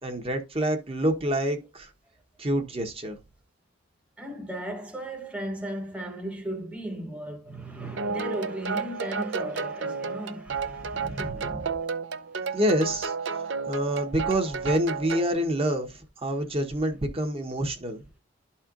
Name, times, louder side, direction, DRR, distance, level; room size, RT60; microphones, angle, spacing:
voice 1, 0.0-1.9 2.4-3.2 10.8-11.7 12.5-18.0, right 1 dB, 30° right, 1.0 m, -28 dB
voice 2, 4.2-11.3, right 1 dB, 5° right, 1.0 m, -36 dB
sound 1, 8.0-15.3, right 5 dB, 65° right, 0.6 m, -32 dB
12.5 x 4.3 x 2.5 m
head